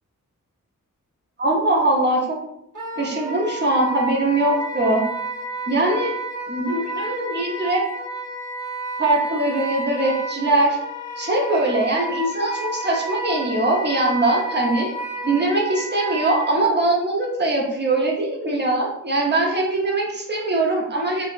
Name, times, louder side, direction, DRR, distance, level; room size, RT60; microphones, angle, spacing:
voice 1, 1.4-2.4 3.0-5.0 5.7-6.1 6.5-7.8 9.0-10.8 11.2-14.9 15.2-21.3, right 2 dB, 30° right, -1 dB, 1.0 m, -21 dB
Wind instrument woodwind instrument, 2.7-16.5, right 1 dB, 70° right, 1.4 m, -31 dB
4.9 x 2.5 x 2.5 m, 0.78 s
wide cardioid pair, 70°, 32 cm